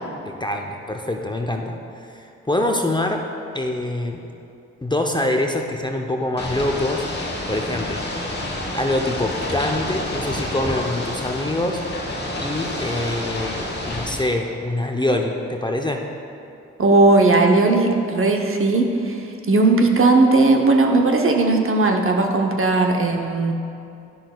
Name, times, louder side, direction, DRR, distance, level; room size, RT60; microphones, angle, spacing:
voice 1, 0.3-1.8 2.0-3.2 3.5-4.2 4.8-7.0 7.5-8.1 8.7-11.8 12.4-16.0, left 1 dB, 15° left, 2 dB, 0.6 m, -24 dB
Ocean / Boat Water vehicle, 6.4-14.2, left 1 dB, 35° left, 1.2 m, -29 dB
voice 2, 16.8-19.1 19.5-23.5, right 3 dB, 45° right, 2 dB, 0.8 m, -17 dB
10.0 x 6.0 x 2.3 m, 2.6 s
supercardioid pair, 45°, 31 cm